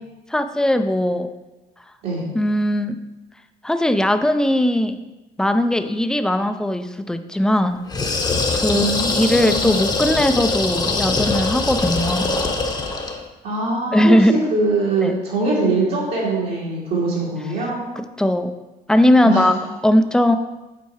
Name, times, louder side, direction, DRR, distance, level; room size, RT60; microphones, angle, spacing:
voice 1, 0.3-1.3 2.3-3.0 3.6-5.0 5.4-7.8 8.5-12.3 13.9-14.4 15.0-15.2 18.2-18.5 18.9-19.6 19.8-20.4, left 1 dB, 5° left, 8 dB, 0.5 m, -18 dB
sound 1, 7.9-13.2, left 3 dB, 25° left, 0.9 m, -22 dB
voice 2, 8.7-9.8 13.4-17.9 19.2-19.5, right 3 dB, 75° right, -7 dB, 2.5 m, -22 dB
8.5 x 4.5 x 4.7 m, 1.1 s
cardioid pair, 110°, 17 cm